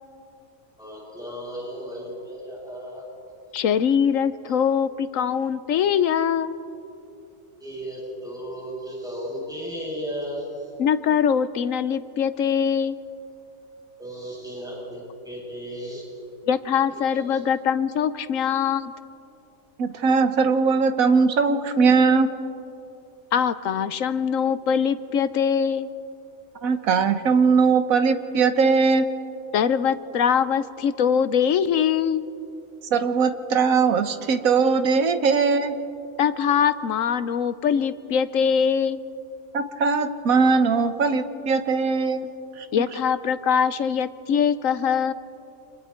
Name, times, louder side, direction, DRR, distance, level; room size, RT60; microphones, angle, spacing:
voice 1, 0.8-3.0 7.6-10.4 14.0-16.0 17.1-17.2, equal, 5° right, -5 dB, 7.9 m, -35 dB
voice 2, 3.5-6.6 10.8-13.0 16.5-18.9 23.3-25.9 29.5-32.3 36.2-39.0 42.7-45.1, left 7 dB, 75° left, 14 dB, 1.1 m, -22 dB
voice 3, 19.8-22.3 26.6-29.1 32.9-35.7 39.5-42.7, right 5 dB, 85° right, 9 dB, 1.5 m, -20 dB
29.5 x 26.5 x 4.4 m, 2.7 s
omnidirectional pair, 1.4 m